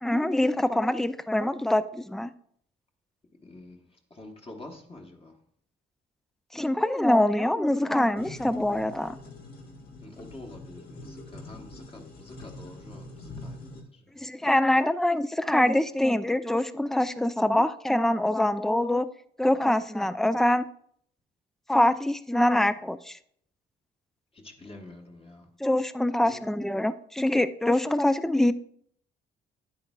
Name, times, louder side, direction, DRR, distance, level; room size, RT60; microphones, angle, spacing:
voice 1, 0.0-2.3 6.5-9.2 14.2-19.1 19.4-20.7 21.7-23.2 25.6-28.5, left 1 dB, ahead, 0.4 m, -24 dB
voice 2, 3.4-3.8 4.1-5.4 10.0-14.0 24.3-25.5 26.2-26.5, left 2 dB, 30° left, 1.1 m, -47 dB
sound 1, 8.2-13.8, left 2 dB, 50° left, 1.7 m, -44 dB
9.4 x 8.5 x 2.3 m
cardioid pair, 90°, 20 cm